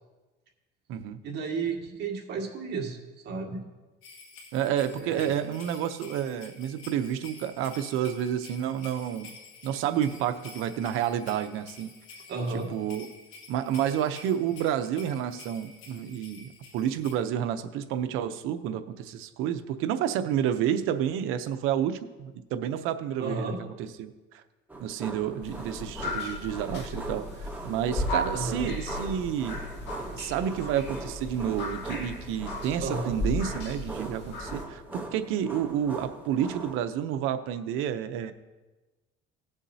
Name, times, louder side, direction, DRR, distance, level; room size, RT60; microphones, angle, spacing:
voice 1, 1.2-3.0 3.2-3.6 5.0-5.3 12.3-12.7 23.2-23.6 28.3-28.7 32.8-33.2, right 4 dB, 55° right, -1 dB, 1.9 m, -32 dB
sound 1, 4.0-17.1, left 3 dB, 75° left, 2.1 m, -49 dB
voice 2, 4.5-9.3 9.6-11.9 12.5-13.1 13.5-24.4 24.8-29.6 30.2-38.3, right 9 dB, 80° right, 9 dB, 0.7 m, -30 dB
sound 2, 24.7-36.8, right 2 dB, 10° right, 1.0 m, -41 dB
sound 3, 25.4-34.6, left 1 dB, 55° left, 2.3 m, -35 dB
18.0 x 7.2 x 2.8 m, 1.2 s
cardioid pair, 135°, 21 cm